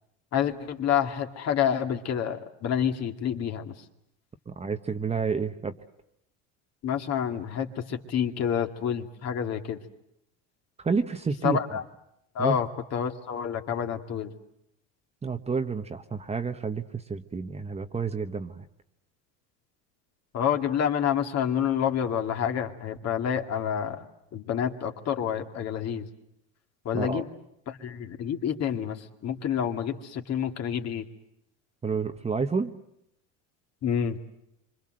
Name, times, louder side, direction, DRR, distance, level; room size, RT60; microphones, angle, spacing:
voice 1, 0.3-3.7 6.8-9.8 11.4-11.8 12.4-14.3 20.3-24.0 24.3-26.1 26.8-27.3 27.7-31.0 33.8-34.2, left 8 dB, 45° left, 4 dB, 2.4 m, -28 dB
voice 2, 4.5-5.8 10.8-11.6 12.4-12.6 15.2-18.6 26.9-27.2 31.8-32.7, right 5 dB, 15° right, 7 dB, 1.2 m, -29 dB
26.5 x 25.5 x 7.8 m, 0.80 s
supercardioid pair, 115°, 36 cm